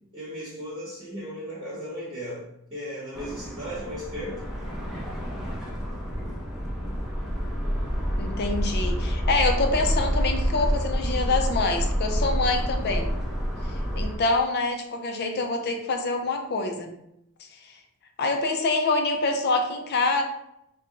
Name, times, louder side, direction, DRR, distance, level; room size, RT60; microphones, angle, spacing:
voice 1, 0.1-4.5, equal, 25° right, -9 dB, 1.1 m, -36 dB
sound 1, 3.1-14.2, equal, ahead, 0.6 m, -28 dB
voice 2, 8.2-13.2 14.0-16.9 18.2-20.2, left 3 dB, 50° left, 4 dB, 0.5 m, -26 dB
3.3 x 2.2 x 3.8 m, 0.78 s
head